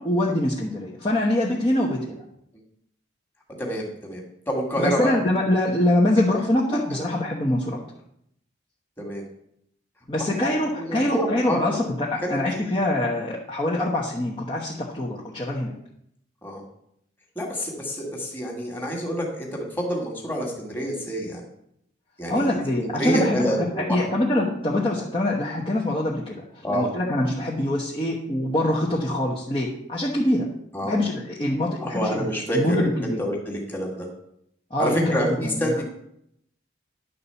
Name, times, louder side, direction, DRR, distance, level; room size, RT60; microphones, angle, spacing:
voice 1, 0.0-2.2 4.8-7.8 10.1-15.8 22.3-23.5 23.8-30.5 30.8-32.3 32.5-33.2 34.7-35.7, left 1 dB, 25° left, -5 dB, 1.1 m, -24 dB
voice 2, 3.6-5.2 6.7-7.0 9.0-9.2 10.2-10.3 10.8-11.8 12.2-12.8 16.4-16.6 17.4-21.4 22.2-24.1 26.6-26.9 30.7-30.9 31.8-34.1 34.8-35.8, equal, 10° left, -1 dB, 1.9 m, -28 dB
10.5 x 4.2 x 6.9 m, 0.74 s
head